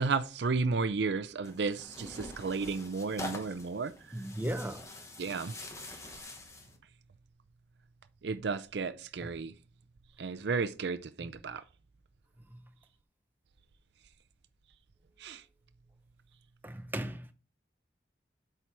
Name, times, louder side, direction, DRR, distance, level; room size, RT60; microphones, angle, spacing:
voice 1, 0.0-3.9 5.2-5.5 8.2-9.5 10.2-11.6 15.2-15.4, right 4 dB, 75° right, 0.5 m, -33 dB
Tearing, 1.4-6.8, left 1 dB, 15° left, 1.0 m, -45 dB
voice 2, 4.1-4.9 9.2-9.3 12.5-12.6 16.6-17.3, right 1 dB, 10° right, 0.7 m, -36 dB
8.1 x 4.5 x 4.6 m
head